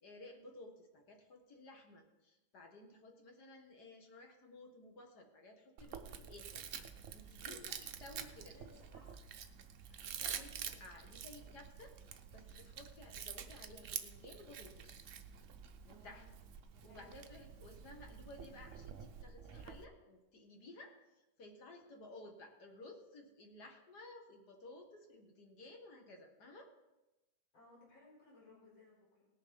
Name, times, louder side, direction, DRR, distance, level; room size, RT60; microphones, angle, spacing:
voice 1, 0.0-8.6 9.9-11.9 12.3-15.1 15.8-16.3 16.8-26.7, left 2 dB, 55° left, 2 dB, 2.2 m, -56 dB
Chewing mastication, 5.8-19.8, right 8 dB, 65° right, 0.7 m, -48 dB
voice 2, 8.4-9.1 15.9-16.4 16.8-17.3 27.5-29.3, left 3 dB, 70° left, -4 dB, 5.0 m, -62 dB
19.0 x 6.7 x 5.3 m, 1.0 s
omnidirectional pair, 2.2 m